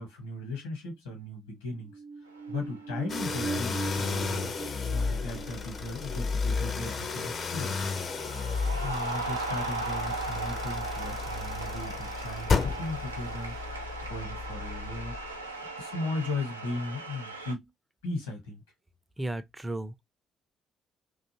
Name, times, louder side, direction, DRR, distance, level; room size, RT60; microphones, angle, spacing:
voice 1, 0.0-1.9 2.5-4.5 4.9-7.9 8.8-13.5 14.1-15.5 15.8-17.7 18.0-18.6, left 2 dB, 75° left, 1.1 m, -37 dB
sound 1, 1.7-8.1 8.5-8.6, right 4 dB, 55° right, 0.7 m, -41 dB
sound 2, 2.3-2.8 3.0-3.6 4.4-4.7 5.1-7.3 7.6-17.5, right 3 dB, 85° right, 0.3 m, -38 dB
sound 3, 3.1-15.5, left 4 dB, 40° left, 0.5 m, -33 dB
voice 2, 19.2-20.0, right 1 dB, 15° right, 0.5 m, -34 dB
2.5 x 2.3 x 2.9 m
figure-of-eight pair, 45°, 0 cm